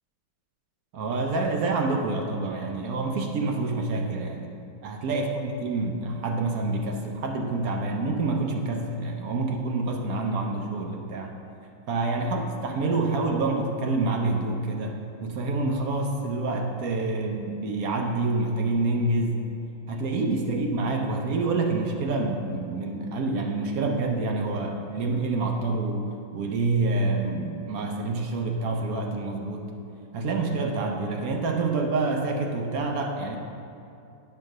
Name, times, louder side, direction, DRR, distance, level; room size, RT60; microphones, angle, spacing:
voice 1, 0.9-4.5 4.8-11.3 11.9-19.4 19.9-26.0 26.3-29.7 30.1-33.4, right 3 dB, 75° right, 2 dB, 0.8 m, -27 dB
8.5 x 3.2 x 6.3 m, 2.7 s
omnidirectional pair, 2.2 m